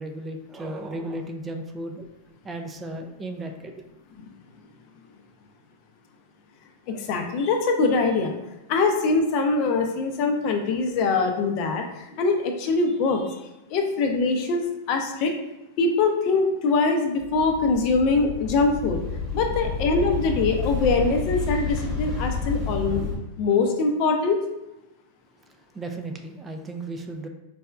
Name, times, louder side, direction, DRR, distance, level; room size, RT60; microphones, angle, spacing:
voice 1, 0.0-2.1 2.4-3.7 25.5-27.3, right 1 dB, 15° right, 4 dB, 0.3 m, -35 dB
voice 2, 6.9-8.3 8.7-13.4 13.7-15.3 15.8-19.0 19.3-23.1 23.4-24.4, left 3 dB, 50° left, 4 dB, 0.5 m, -23 dB
sound 1, 17.2-23.2, left 5 dB, 25° left, 0.9 m, -30 dB
4.1 x 2.2 x 2.3 m, 0.95 s
supercardioid pair, 135°, 0 cm